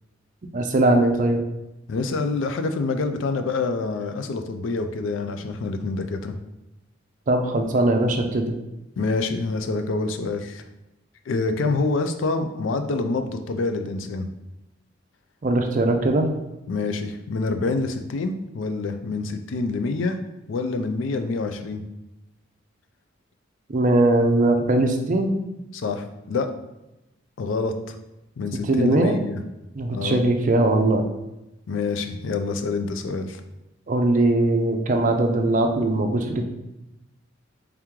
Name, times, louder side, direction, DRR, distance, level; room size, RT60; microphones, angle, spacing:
voice 1, 0.5-1.4 7.3-8.6 15.4-16.3 23.7-25.3 28.5-29.2 29.7-31.0 33.9-36.4, right 2 dB, 40° right, 4 dB, 0.5 m, -20 dB
voice 2, 1.9-6.4 9.0-10.6 11.3-14.3 16.7-20.2 20.5-21.8 25.7-26.5 27.4-28.0 28.4-29.4 29.9-30.2 31.7-33.4, left 3 dB, 85° left, 7 dB, 0.4 m, -26 dB
3.4 x 3.0 x 3.6 m, 0.94 s
head